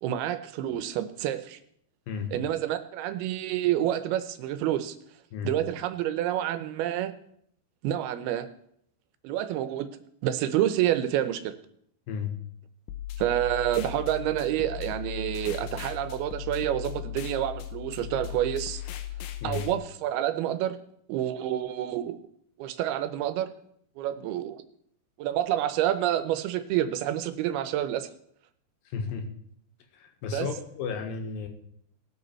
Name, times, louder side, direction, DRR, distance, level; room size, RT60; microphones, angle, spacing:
voice 1, 0.0-1.6 2.3-5.0 5.4-7.1 7.8-8.5 9.2-9.9 10.2-11.6 13.2-18.8 19.4-20.8 21.1-22.2 22.6-23.5 24.0-24.6 25.2-28.1 30.3-30.5, right 12 dB, 80° right, 11 dB, 2.6 m, -28 dB
voice 2, 12.1-12.4 19.4-19.7 28.9-29.3 29.9-31.5, left 6 dB, 70° left, 5 dB, 2.9 m, -33 dB
sound 1, 12.9-19.7, left 12 dB, 85° left, 2.9 m, -37 dB
19.0 x 6.7 x 4.4 m, 0.70 s
omnidirectional pair, 4.6 m